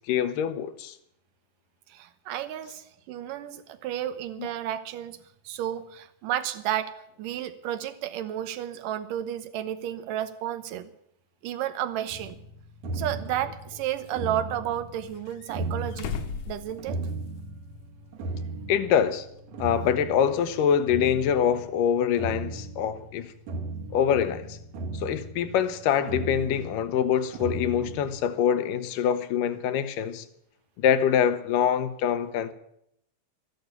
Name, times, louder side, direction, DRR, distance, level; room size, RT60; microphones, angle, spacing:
voice 1, 0.1-1.0 4.4-4.5 18.7-19.3 19.6-23.3 23.9-24.6 24.9-30.3 30.8-32.5, left 8 dB, 85° left, 2.6 m, -25 dB
voice 2, 1.9-5.2 5.5-6.9 7.2-10.9 11.4-12.4 12.9-16.2 16.5-17.0, right 11 dB, 90° right, 2.6 m, -32 dB
sound 1, 12.1-28.3, right 2 dB, 65° right, 2.7 m, -37 dB
sound 2, 12.3-12.4 13.2-14.2 15.1-17.4 17.7-17.8 19.4-19.5, left 7 dB, 65° left, 2.0 m, -39 dB
13.5 x 11.5 x 8.3 m
omnidirectional pair, 3.7 m